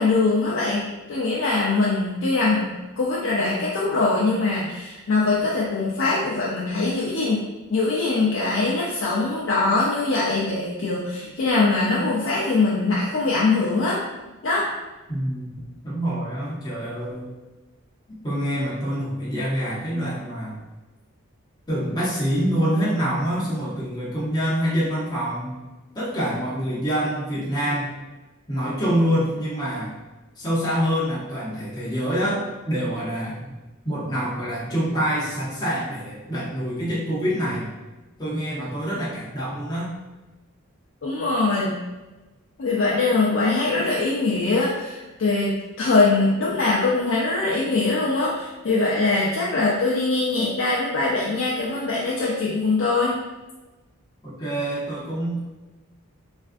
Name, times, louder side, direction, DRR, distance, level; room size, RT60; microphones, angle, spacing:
voice 1, 0.0-7.4 7.7-14.0 14.4-14.7 41.0-41.8 42.6-53.2, left 3 dB, 60° left, -5 dB, 0.4 m, -22 dB
voice 2, 15.1-17.3 18.2-20.6 21.7-25.6 25.9-27.9 28.5-29.9 30.4-33.5 33.8-37.7 38.2-39.9 54.2-55.4, equal, 20° left, -9 dB, 0.6 m, -26 dB
3.4 x 2.4 x 2.5 m, 1.1 s
head